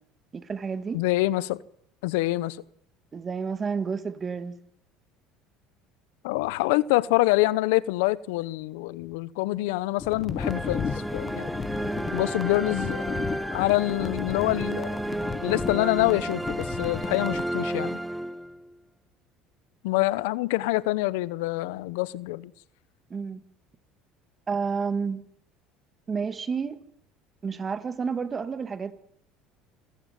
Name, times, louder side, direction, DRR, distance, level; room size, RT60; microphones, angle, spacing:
voice 1, 0.3-1.0 3.1-4.6 12.0-12.2 23.1-23.4 24.5-25.3 26.1-26.8 27.4-28.9, right 5 dB, 25° right, 2.2 m, -30 dB
voice 2, 0.9-1.6 2.0-2.6 6.2-11.5 12.1-13.2 13.5-15.0 15.4-18.0 19.8-22.5, left 19 dB, 85° left, 0.9 m, -26 dB
sound 1, 10.0-17.5, left 5 dB, 30° left, 1.5 m, -35 dB
sound 2, 10.4-18.7, right 1 dB, 5° right, 1.1 m, -32 dB
26.5 x 15.0 x 9.3 m
supercardioid pair, 115°, 0 cm